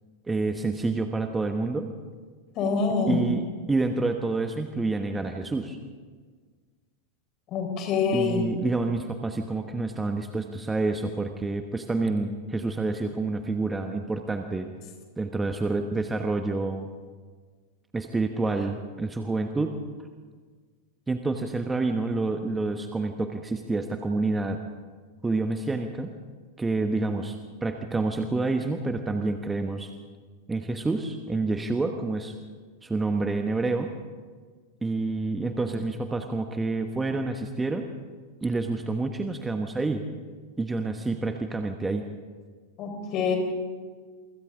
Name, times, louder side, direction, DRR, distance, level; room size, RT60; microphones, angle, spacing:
voice 1, 0.3-1.9 3.1-5.8 8.1-14.7 15.2-16.9 17.9-19.7 21.1-24.6 25.2-26.1 26.6-29.9 30.5-32.4 32.8-33.9 34.8-37.9 38.4-40.0 40.6-42.0, right 3 dB, 10° right, 5 dB, 1.3 m, -28 dB
voice 2, 2.6-3.2 7.5-8.5 42.8-43.4, left 5 dB, 35° left, 4 dB, 4.7 m, -25 dB
27.5 x 24.5 x 3.8 m, 1.5 s
figure-of-eight pair, 90°, 0 cm